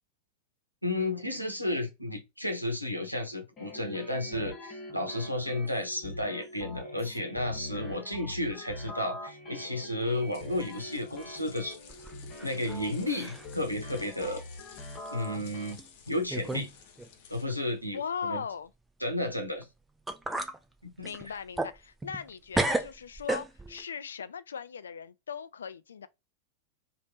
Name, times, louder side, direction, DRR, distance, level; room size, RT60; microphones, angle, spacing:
voice 1, 0.8-11.8 12.4-14.4 15.1-15.8 16.1-16.7 17.3-18.4 19.0-19.7 20.8-21.1, left 1 dB, 90° right, 0.8 m, -32 dB
sound 1, 3.6-15.7, left 1 dB, 30° left, 1.4 m, -43 dB
sound 2, 10.0-17.8, left 7 dB, 50° left, 0.8 m, -54 dB
sound 3, 11.9-12.8 13.1-13.5 14.0-14.1 14.9-15.1 15.8-15.9 16.3-16.7 17.0-17.1 19.6-19.7 20.1-20.6 21.0-22.3 22.5-23.8, right 2 dB, 10° right, 0.5 m, -33 dB
voice 2, 17.9-18.7 21.0-26.1, left 7 dB, 70° left, 0.3 m, -38 dB
3.4 x 2.5 x 2.8 m
figure-of-eight pair, 90°, 0 cm